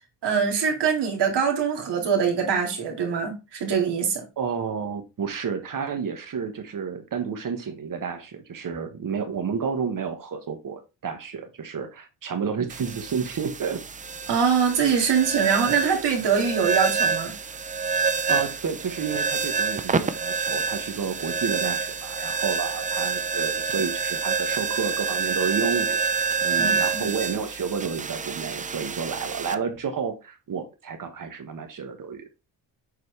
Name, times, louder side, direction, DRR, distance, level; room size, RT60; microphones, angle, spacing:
voice 1, 0.2-4.2 14.3-17.3 26.6-27.1, right 6 dB, 70° right, 2.2 m, -23 dB
voice 2, 4.4-13.8 18.3-32.3, right 6 dB, 50° right, 1.2 m, -31 dB
sound 1, 12.7-29.5, right 5 dB, 20° right, 0.4 m, -27 dB
7.1 x 4.2 x 3.2 m
cardioid pair, 110°, 43 cm